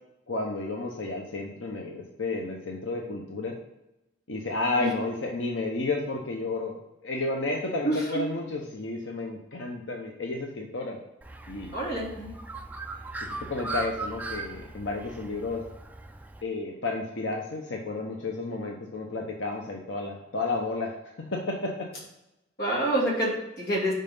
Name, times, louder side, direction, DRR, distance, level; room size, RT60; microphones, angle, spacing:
voice 1, 0.3-3.5 4.3-6.8 7.0-11.0 11.5-11.8 13.5-15.6 16.4-21.7, left 2 dB, 90° left, 0 dB, 0.9 m, -32 dB
voice 2, 7.8-8.2 11.7-12.3 22.6-23.9, right 1 dB, 55° left, -4 dB, 2.7 m, -27 dB
Bird, 11.2-16.4, right 2 dB, 10° right, 0.4 m, -38 dB
5.6 x 5.3 x 5.4 m, 0.92 s
head